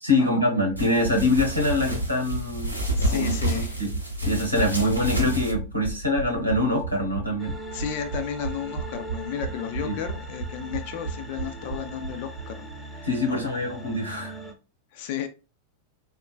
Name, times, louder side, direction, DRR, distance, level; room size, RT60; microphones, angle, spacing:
voice 1, 0.0-2.7 3.1-3.9 4.2-7.6 9.8-10.0 13.0-14.4, left 1 dB, 90° right, 1.0 m, -24 dB
sound 1, 0.7-12.5 12.7-12.8 13.0-13.1, right 3 dB, 65° right, 0.5 m, -34 dB
sound 2, 0.8-5.5, equal, 90° left, 0.8 m, -29 dB
voice 2, 3.0-3.8 7.7-13.4 14.9-15.3, left 9 dB, 50° left, 0.4 m, -33 dB
sound 3, 7.4-14.5, right 1 dB, 5° left, 0.7 m, -40 dB
3.6 x 2.4 x 2.2 m
figure-of-eight pair, 90°, 0 cm